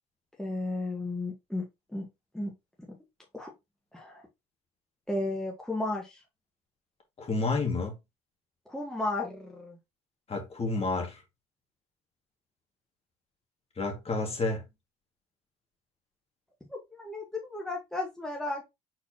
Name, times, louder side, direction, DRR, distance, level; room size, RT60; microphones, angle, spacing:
voice 1, 0.4-1.7 1.9-2.1 2.3-2.5 3.3-3.5 3.9-4.2 5.1-6.2 8.7-9.8 16.7-18.6, left 2 dB, 5° left, 1.5 m, -34 dB
voice 2, 7.2-8.0 10.3-11.2 13.8-14.6, left 3 dB, 35° left, 2.1 m, -30 dB
4.5 x 4.1 x 2.9 m
supercardioid pair, 85°, 18 cm